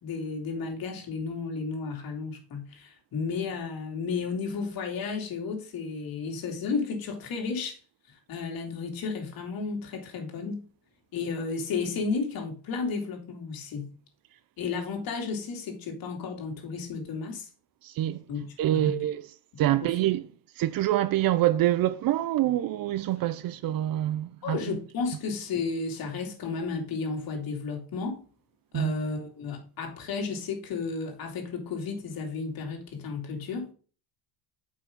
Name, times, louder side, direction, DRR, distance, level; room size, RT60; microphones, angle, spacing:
voice 1, 0.0-7.8 8.3-10.6 11.1-13.9 14.6-17.5 18.3-19.0 19.8-19.9 24.4-28.2 28.7-33.7, left 4 dB, 50° left, 2.8 m, -33 dB
voice 2, 17.8-18.2 18.6-20.3 20.6-24.8 28.7-28.9, right 13 dB, 50° right, 0.7 m, -26 dB
7.6 x 5.7 x 3.7 m
supercardioid pair, 100°, 44 cm